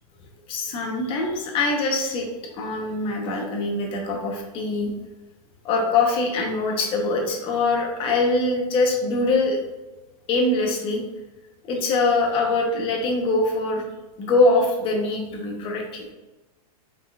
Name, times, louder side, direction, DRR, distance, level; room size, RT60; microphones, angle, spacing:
voice 1, 0.5-2.3 2.5-4.9 5.6-9.6 10.3-11.0 11.7-13.8 14.2-16.1, left 3 dB, 25° left, 1 dB, 0.9 m, -23 dB
5.6 x 3.7 x 2.4 m, 1.1 s
supercardioid pair, 155°, 20 cm